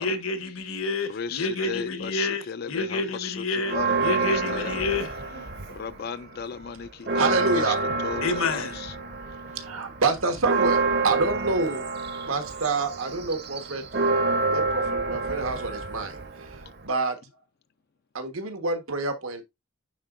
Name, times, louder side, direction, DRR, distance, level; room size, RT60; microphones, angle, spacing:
voice 1, 0.0-2.4 2.7-5.6 8.2-8.8, left 3 dB, 80° left, 1.3 m, -29 dB
voice 2, 1.0-4.8 5.7-7.8 8.0-9.0, left 6 dB, 45° left, 0.4 m, -36 dB
Church bell, 3.6-6.0 6.4-6.5 6.8-16.9, right 3 dB, 50° right, 0.9 m, -28 dB
voice 3, 7.2-8.0 9.5-11.9 12.3-13.8 14.5-17.2 18.1-19.4, right 3 dB, 80° right, 1.4 m, -28 dB
9.7 x 4.0 x 2.5 m
head